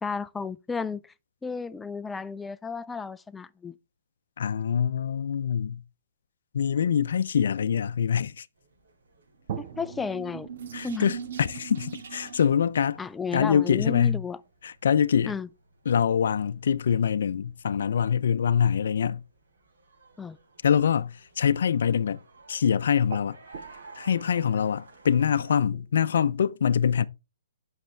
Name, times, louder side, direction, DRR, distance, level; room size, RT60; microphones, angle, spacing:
voice 1, 0.0-1.1 1.4-3.7 9.6-10.5 10.8-11.1 13.0-14.4 15.3-15.5 20.2-20.4, left 5 dB, 5° left, 0.4 m, -33 dB
voice 2, 4.4-5.8 6.5-8.5 10.7-13.0 13.3-14.2 14.6-15.3 15.9-19.2 20.6-22.2 22.5-23.4 24.0-27.0, left 7 dB, 65° left, 0.5 m, -24 dB
sound 1, 8.5-25.6, right 3 dB, 85° right, 4.5 m, -55 dB
sound 2, 9.5-14.8 15.7-15.8 16.9-17.0 17.3-17.8 22.4-22.6 22.9-26.1, right 8 dB, 45° right, 1.0 m, -45 dB
sound 3, 9.7-12.7, right 7 dB, 65° right, 2.6 m, -40 dB
9.1 x 6.6 x 3.3 m
hypercardioid pair, 160°, 0 cm